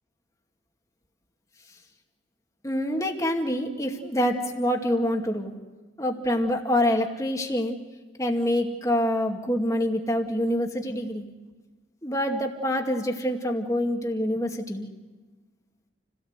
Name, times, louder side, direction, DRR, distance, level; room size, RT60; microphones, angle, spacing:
voice 1, 2.6-5.5 6.0-7.8 8.2-11.3 12.0-14.9, equal, 15° left, 2 dB, 2.2 m, -26 dB
28.5 x 17.5 x 8.1 m, 1.3 s
head